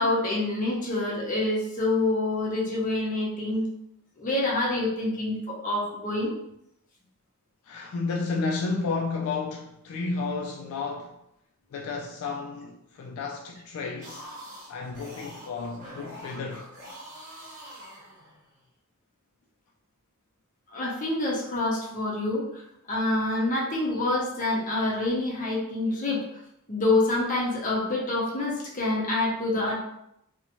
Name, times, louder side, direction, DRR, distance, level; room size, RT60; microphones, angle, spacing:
voice 1, 0.0-3.7 4.2-6.3 20.7-22.6 22.9-26.2 26.7-29.8, left 2 dB, 40° left, 0.7 m, -27 dB
voice 2, 7.6-11.2 11.7-14.3 14.7-16.7, left 4 dB, 75° left, 0.3 m, -32 dB
sound 1, 13.9-18.6, equal, 40° right, 0.9 m, -45 dB
2.6 x 2.1 x 3.0 m
head